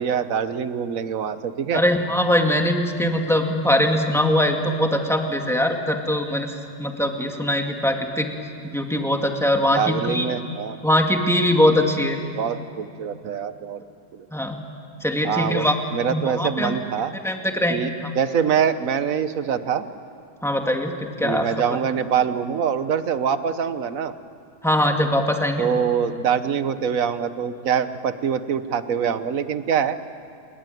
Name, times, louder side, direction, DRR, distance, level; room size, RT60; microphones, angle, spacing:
voice 1, 0.0-1.8 9.7-10.8 12.3-13.8 14.1-14.3 15.2-15.6 15.9-17.1 17.7-19.9 21.2-24.1 25.6-30.0, right 7 dB, 55° right, 12 dB, 1.3 m, -24 dB
voice 2, 1.7-8.3 8.7-10.3 10.8-12.2 14.3-14.6 15.0-15.8 16.1-16.8 17.2-18.1 20.4-21.8 24.6-25.7, left 1 dB, ahead, 3 dB, 2.0 m, -22 dB
27.5 x 22.0 x 9.3 m, 2.4 s
omnidirectional pair, 1.8 m